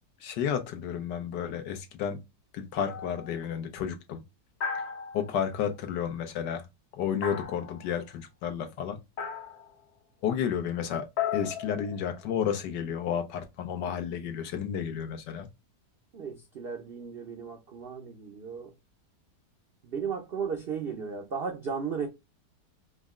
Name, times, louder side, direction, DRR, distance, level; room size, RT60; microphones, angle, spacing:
voice 1, 0.2-2.2 2.5-4.2 5.1-6.6 6.9-9.0 10.2-11.1 11.3-15.5, left 8 dB, 80° left, 1.5 m, -31 dB
sound 1, 2.8-3.3 4.6-5.5 7.2-8.0 9.2-9.7 11.2-12.4, left 7 dB, 65° left, 1.4 m, -35 dB
voice 2, 16.1-18.7 19.8-22.1, right 6 dB, 55° right, 0.6 m, -35 dB
5.0 x 2.1 x 3.6 m
omnidirectional pair, 1.8 m